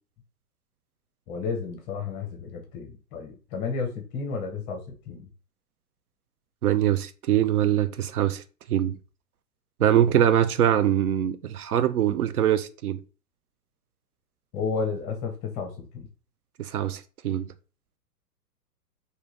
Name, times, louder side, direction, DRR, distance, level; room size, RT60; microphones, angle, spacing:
voice 1, 1.3-5.3 14.5-16.1, left 5 dB, 20° left, 0.7 m, -32 dB
voice 2, 6.6-8.4 8.7-9.0 9.8-13.0 16.6-17.5, right 11 dB, 65° right, 0.5 m, -23 dB
3.6 x 2.7 x 3.0 m
figure-of-eight pair, 110°, 49 cm